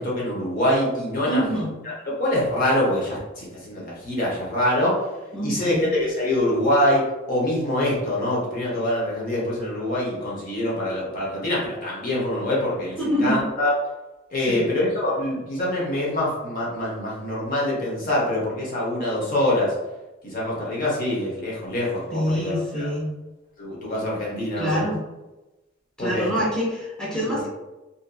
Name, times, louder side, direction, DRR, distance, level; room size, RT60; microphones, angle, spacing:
voice 1, 0.0-5.0 5.4-13.7 14.3-19.7 20.2-22.9 23.6-24.8 26.0-26.3 27.1-27.4, left 1 dB, 50° left, -5 dB, 0.8 m, -25 dB
voice 2, 1.2-1.8 5.3-5.9 13.0-13.4 14.5-14.7 22.1-23.1 24.6-25.0 26.0-27.5, equal, 5° left, -7 dB, 0.8 m, -25 dB
2.6 x 2.6 x 2.2 m, 1.1 s
head